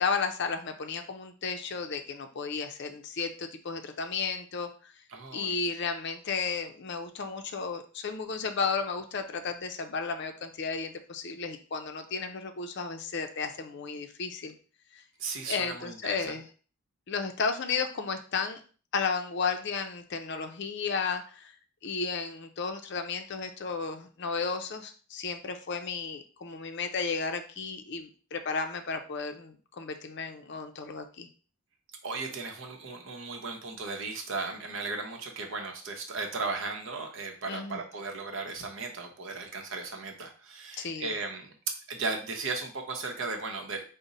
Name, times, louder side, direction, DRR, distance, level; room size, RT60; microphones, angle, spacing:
voice 1, 0.0-4.9 5.3-14.5 14.9-15.0 15.5-16.4 17.1-18.6 18.9-21.5 21.8-31.3 37.5-37.8 40.8-41.1, left 5 dB, 50° left, 6 dB, 0.5 m, -33 dB
voice 2, 5.1-5.6 15.2-16.4 32.0-43.8, right 3 dB, 60° right, 3 dB, 0.8 m, -36 dB
5.1 x 2.1 x 4.0 m, 0.39 s
head